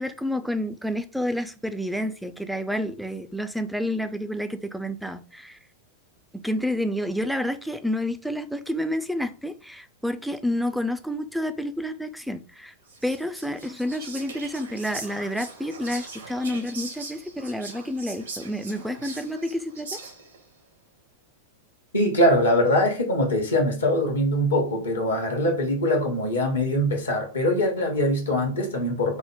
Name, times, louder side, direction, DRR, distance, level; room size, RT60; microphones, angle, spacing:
voice 1, 0.0-5.6 6.3-12.7 13.0-20.0, left 1 dB, ahead, 0.4 m, -29 dB
Whispering, 12.9-20.4, right 3 dB, 70° right, 1.0 m, -40 dB
voice 2, 21.9-29.2, left 1 dB, 75° left, 1.0 m, -22 dB
4.4 x 2.1 x 3.6 m
figure-of-eight pair, 90°, 0 cm